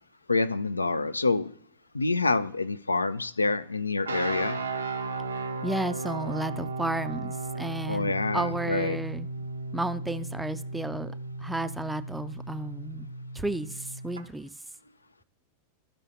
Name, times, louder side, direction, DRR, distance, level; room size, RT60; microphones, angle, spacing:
voice 1, 0.3-1.5 1.9-4.6 7.9-9.0, left 3 dB, 80° left, 15 dB, 0.3 m, -27 dB
sound 1, 4.0-14.2, right 3 dB, 80° right, 0.7 m, -35 dB
voice 2, 5.6-9.3 9.7-11.1 11.4-13.1 13.3-14.5, right 1 dB, 5° right, 13 dB, 0.4 m, -32 dB
13.0 x 5.5 x 2.7 m, 0.66 s
figure-of-eight pair, 90°, 0 cm